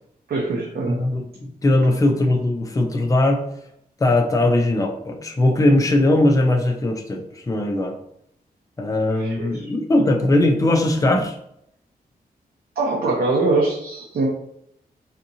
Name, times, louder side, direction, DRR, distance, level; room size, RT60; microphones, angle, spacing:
voice 1, 0.3-1.0 9.1-9.7 12.8-14.3, right 3 dB, 80° right, -3 dB, 0.7 m, -23 dB
voice 2, 0.9-3.4 4.0-8.0 8.8-11.4, left 1 dB, 20° left, 3 dB, 0.4 m, -19 dB
3.5 x 2.8 x 2.7 m, 0.74 s
wide cardioid pair, 170°, 16 cm